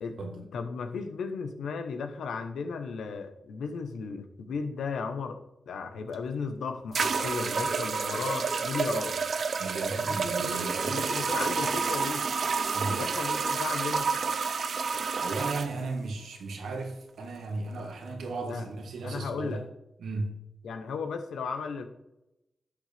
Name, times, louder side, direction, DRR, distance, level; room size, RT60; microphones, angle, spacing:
voice 1, 0.0-5.4 5.7-9.2 10.0-12.3 12.8-14.1 18.5-18.7 19.0-19.6 20.6-21.9, left 5 dB, 90° left, 1.0 m, -35 dB
sound 1, 6.1-6.2 6.9-15.7, right 5 dB, 70° right, 0.6 m, -29 dB
voice 2, 9.6-11.0 12.7-13.0 15.2-19.7 20.0-20.4, right 3 dB, 90° right, 1.6 m, -35 dB
11.5 x 6.7 x 3.5 m
cardioid pair, 45°, 0 cm